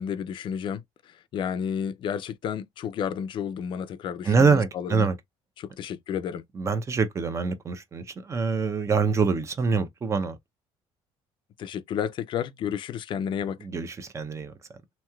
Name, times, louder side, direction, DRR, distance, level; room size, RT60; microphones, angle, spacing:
voice 1, 0.0-5.1 5.6-6.4 11.6-13.6, left 8 dB, 50° left, 0.4 m, -31 dB
voice 2, 4.2-5.2 6.5-10.4 13.6-14.5, right 5 dB, 25° right, 0.6 m, -25 dB
3.1 x 2.7 x 2.3 m
cardioid pair, 135°, 11 cm